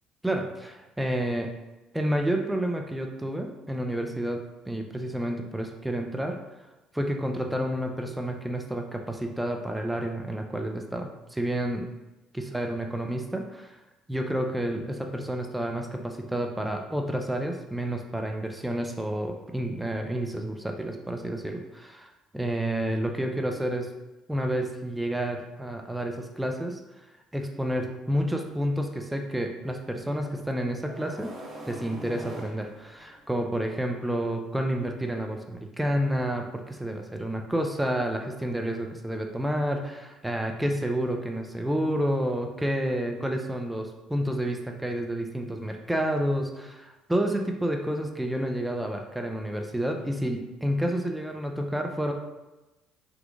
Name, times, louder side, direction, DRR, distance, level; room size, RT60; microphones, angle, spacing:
voice 1, 0.2-1.5 1.9-6.4 6.9-11.9 12.3-13.7 14.1-22.1 22.3-23.9 24.3-26.8 27.3-31.3 31.7-52.1, right 1 dB, 5° right, 3 dB, 0.4 m, -30 dB
sound 1, 30.9-33.5, right 1 dB, 35° right, 1.4 m, -43 dB
3.9 x 2.8 x 2.4 m, 1.1 s
hypercardioid pair, 60°, 0 cm